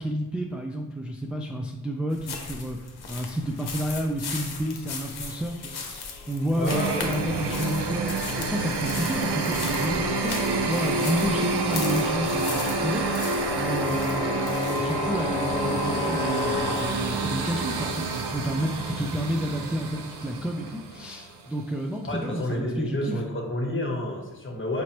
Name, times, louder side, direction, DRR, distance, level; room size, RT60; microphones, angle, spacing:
voice 1, 0.0-2.8 3.1-23.2, equal, 5° right, 0 dB, 0.4 m, -30 dB
sound 1, 2.1-17.0, left 4 dB, 75° left, 0.8 m, -38 dB
voice 2, 6.5-7.4 22.0-24.8, left 1 dB, 30° left, 0 dB, 1.1 m, -30 dB
sound 2, 6.7-21.4, right 3 dB, 85° right, 0.6 m, -29 dB
sound 3, 6.8-16.8, left 3 dB, 15° left, 1.0 m, -33 dB
5.2 x 3.0 x 2.9 m, 1.1 s
cardioid pair, 50°, 39 cm